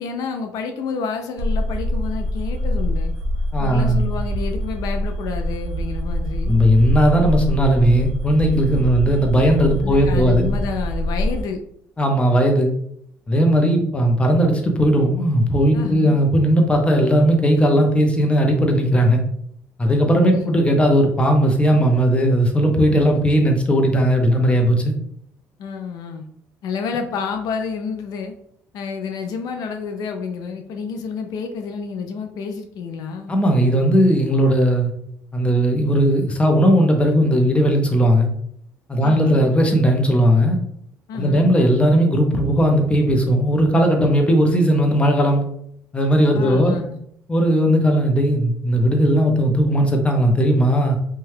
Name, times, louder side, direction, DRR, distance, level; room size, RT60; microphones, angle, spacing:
voice 1, 0.0-3.1 3.6-6.6 8.8-8.9 9.8-11.6 15.7-16.2 20.0-20.5 25.6-26.2 26.6-28.3 28.7-33.4 39.0-39.4 41.1-41.5 46.3-47.0, left 5 dB, 70° left, 5 dB, 0.4 m, -29 dB
sound 1, 1.4-11.4, equal, 80° right, 0.4 m, -24 dB
voice 2, 3.5-4.0 6.5-10.5 12.0-12.7 13.3-19.2 19.8-24.9 33.3-34.9 35.3-38.3 38.9-40.6 41.1-45.5 45.9-46.8 47.3-51.0, equal, 15° left, 2 dB, 0.7 m, -17 dB
2.7 x 2.2 x 3.2 m, 0.69 s
cardioid pair, 95°, 7 cm